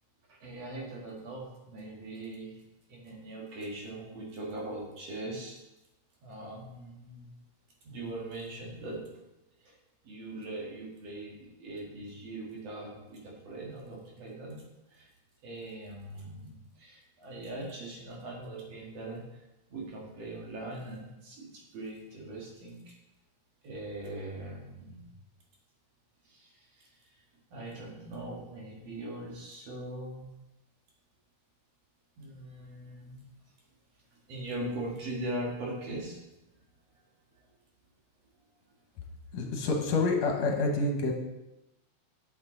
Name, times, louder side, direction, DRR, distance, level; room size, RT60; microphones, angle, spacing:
voice 1, 0.3-2.6 2.9-5.6 6.2-7.3 7.8-9.0 9.6-9.7 10.0-14.6 14.9-15.1 15.4-19.2 19.7-22.9 23.6-25.1 26.3-26.9 27.5-30.3 32.2-33.3 34.3-36.2, right 1 dB, 60° right, -3 dB, 2.8 m, -41 dB
voice 2, 39.3-41.1, left 3 dB, 65° left, 1 dB, 2.3 m, -27 dB
8.4 x 8.3 x 3.9 m, 0.95 s
omnidirectional pair, 3.5 m